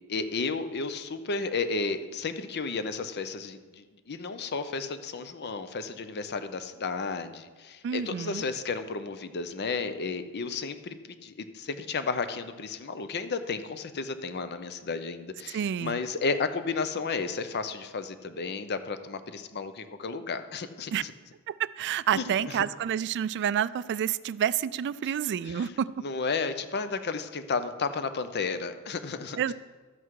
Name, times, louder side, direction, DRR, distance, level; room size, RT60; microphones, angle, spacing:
voice 1, 0.1-21.1 22.1-22.6 25.0-25.1 25.4-29.5, left 4 dB, 50° left, 10 dB, 0.6 m, -33 dB
voice 2, 7.8-8.4 15.5-16.0 20.9-21.0 21.5-25.9 29.4-29.5, right 9 dB, 50° right, 17 dB, 0.3 m, -29 dB
12.5 x 7.9 x 4.7 m, 1.4 s
head